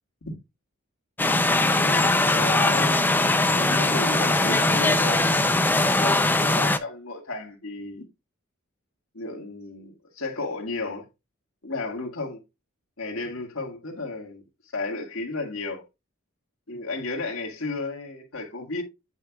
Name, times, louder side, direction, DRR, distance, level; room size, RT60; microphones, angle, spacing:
sound 1, 1.2-6.8, left 2 dB, 10° left, 0.4 m, -21 dB
voice 1, 1.8-3.0 3.5-5.6 6.0-8.1 9.1-11.1 11.6-12.4 13.0-14.4 14.7-15.8 16.7-18.8, left 3 dB, 70° left, 1.8 m, -33 dB
8.6 x 5.5 x 2.3 m
head